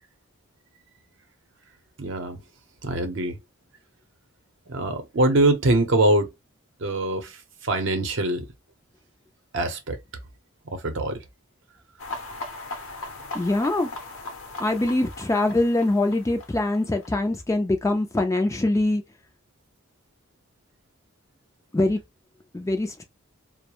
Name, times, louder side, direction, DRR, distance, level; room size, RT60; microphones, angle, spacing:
voice 1, 2.0-2.4 2.8-3.4 4.7-6.3 6.8-8.4 9.5-10.0 10.6-11.2, right 2 dB, 60° right, 0.6 m, -23 dB
sound 1, 12.0-17.1, left 2 dB, 75° left, 0.7 m, -38 dB
voice 2, 13.3-13.9 14.6-19.0 21.7-22.0 22.5-23.0, left 2 dB, 15° left, 0.3 m, -23 dB
2.3 x 2.0 x 2.8 m
head